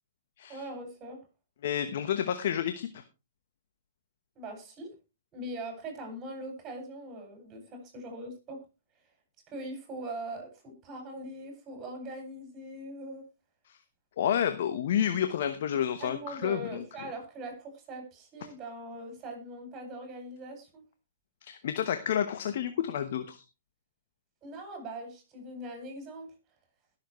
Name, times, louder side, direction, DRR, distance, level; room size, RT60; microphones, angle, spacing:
voice 1, 0.5-1.2 4.3-4.9 5.3-8.6 9.5-13.2 16.0-20.8 24.4-26.3, right 1 dB, 25° right, 4 dB, 6.8 m, -41 dB
voice 2, 1.6-3.0 13.7-13.8 14.2-16.8 21.4-23.4, left 9 dB, 60° left, 9 dB, 1.0 m, -30 dB
20.5 x 7.2 x 3.1 m, 0.28 s
hypercardioid pair, 125°, 0 cm